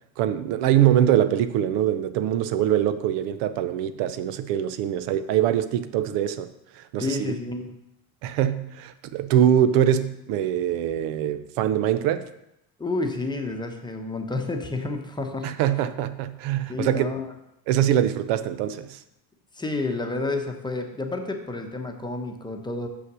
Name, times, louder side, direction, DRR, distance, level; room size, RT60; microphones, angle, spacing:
voice 1, 0.2-6.5 6.8-7.3 8.2-12.3 15.4-17.1 17.7-19.0, right 10 dB, 85° right, 0.7 m, -23 dB
voice 2, 7.0-7.8 12.8-15.5 16.7-17.3 19.5-22.9, left 2 dB, 10° left, 0.8 m, -30 dB
6.4 x 5.8 x 6.1 m
cardioid pair, 135°, 40 cm